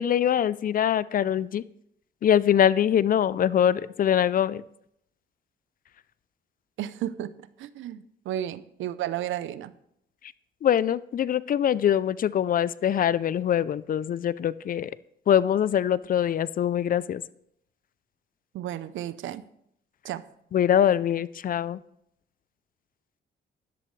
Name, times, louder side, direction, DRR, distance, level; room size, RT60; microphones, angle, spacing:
voice 1, 0.0-1.6 2.2-4.6 10.6-14.9 15.3-17.2 20.5-21.8, left 9 dB, 45° left, 19 dB, 0.4 m, -23 dB
voice 2, 6.8-9.7 18.5-19.4 20.0-20.2, right 12 dB, 75° right, 15 dB, 0.6 m, -33 dB
13.0 x 11.0 x 3.2 m, 0.75 s
cardioid pair, 90°, 20 cm